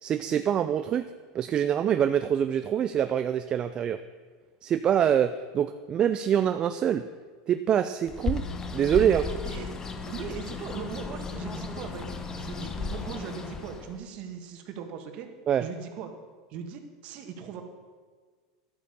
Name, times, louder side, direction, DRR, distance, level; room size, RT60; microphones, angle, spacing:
voice 1, 0.0-1.0 1.3-4.0 4.6-7.0 7.5-8.4 8.7-9.2 15.5-15.7, right 9 dB, 30° right, 10 dB, 0.4 m, -25 dB
Bird, 8.1-14.0, left 4 dB, 20° left, 0.9 m, -35 dB
voice 2, 9.2-9.8 10.1-15.3 15.6-16.1 16.5-17.6, right 7 dB, 45° right, 5 dB, 1.7 m, -39 dB
11.5 x 8.4 x 6.7 m, 1.5 s
supercardioid pair, 130°, 3 cm